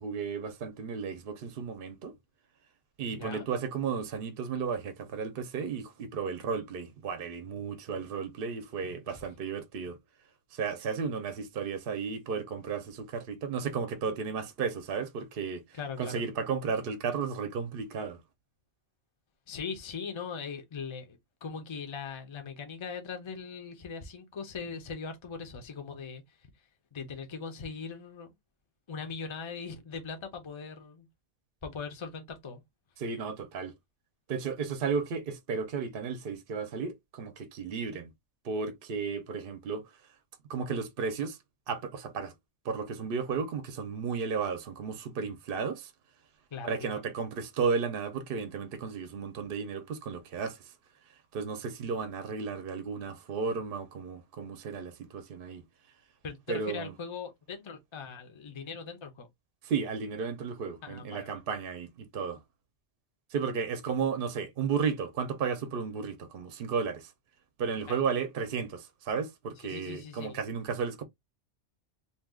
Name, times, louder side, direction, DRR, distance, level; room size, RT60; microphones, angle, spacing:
voice 1, 0.0-2.1 3.0-10.0 10.5-18.2 33.0-33.7 34.3-38.1 38.4-39.9 40.5-41.4 41.7-42.3 42.6-45.9 46.6-50.7 51.3-55.6 56.5-56.9 59.6-62.4 63.3-67.1 67.6-71.0, right 5 dB, 60° right, 0.8 m, -34 dB
voice 2, 3.1-3.5 9.1-9.2 15.7-16.2 19.5-26.5 26.9-28.3 28.9-31.1 31.6-32.6 46.5-47.0 56.2-59.3 60.8-61.4 67.9-68.0 69.6-70.4, left 5 dB, 30° left, 0.6 m, -40 dB
2.7 x 2.3 x 3.5 m
omnidirectional pair, 1.2 m